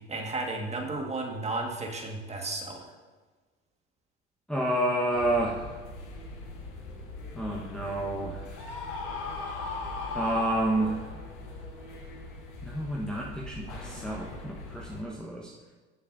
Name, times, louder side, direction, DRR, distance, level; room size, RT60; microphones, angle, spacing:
voice 1, 0.1-2.9, right 2 dB, 20° right, 1 dB, 1.7 m, -33 dB
voice 2, 4.5-5.7 7.4-8.4 10.1-11.0 12.6-15.5, right 1 dB, ahead, -4 dB, 1.2 m, -29 dB
sound 1, 5.1-15.0, left 2 dB, 80° left, 2.3 m, -43 dB
Screaming, 8.6-11.2, left 4 dB, 55° left, 2.8 m, -36 dB
17.0 x 6.6 x 2.7 m, 1.3 s
hypercardioid pair, 85°, 34 cm